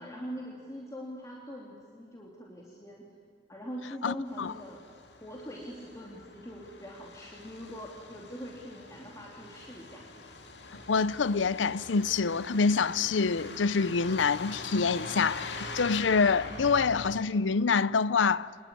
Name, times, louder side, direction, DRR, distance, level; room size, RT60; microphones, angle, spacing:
voice 1, 0.0-3.1 3.5-4.8 5.2-10.1, equal, 15° left, 2.8 m, -43 dB
voice 2, 4.0-4.5 10.9-18.7, left 5 dB, 90° left, 0.6 m, -26 dB
Truck, 4.3-17.2, left 3 dB, 65° left, 2.4 m, -44 dB
26.0 x 20.5 x 10.0 m
head